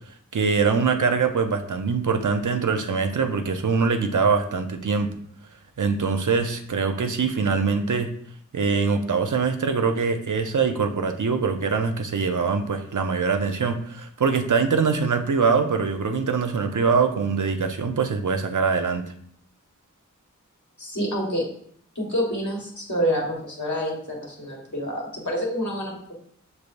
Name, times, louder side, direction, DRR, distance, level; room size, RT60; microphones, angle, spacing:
voice 1, 0.0-5.1 5.8-8.1 8.5-19.0, right 5 dB, 75° right, 7 dB, 0.5 m, -23 dB
voice 2, 20.8-21.4 21.9-25.9, equal, 70° left, -3 dB, 1.4 m, -27 dB
6.3 x 3.3 x 2.5 m, 0.64 s
wide cardioid pair, 40°, 31 cm